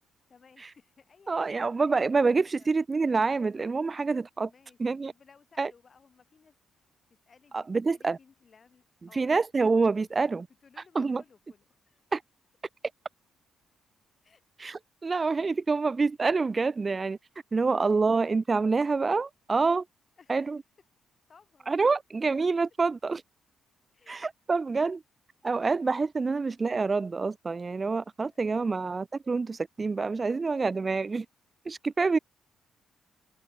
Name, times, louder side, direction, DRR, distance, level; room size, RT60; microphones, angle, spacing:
voice 1, 0.3-1.7 2.6-2.7 4.4-4.8 5.0-6.6 7.1-9.4 10.0-10.3 10.6-12.0 14.2-14.4 17.5-17.9 20.2-20.5 21.3-21.9 23.9-24.1 25.4-25.6 26.2-26.5 28.3-28.8 30.2-30.4, left 5 dB, 40° left, 2.6 m, -60 dB
voice 2, 1.3-4.5 4.8-5.1 5.6-5.7 7.5-8.2 9.1-10.5 10.9-11.2 12.1-12.2 14.6-17.2 17.5-19.9 20.3-20.6 21.7-23.2 24.1-25.0 25.4-31.3 31.7-32.2, right 4 dB, 30° right, 0.5 m, -27 dB
cardioid pair, 90°, 0 cm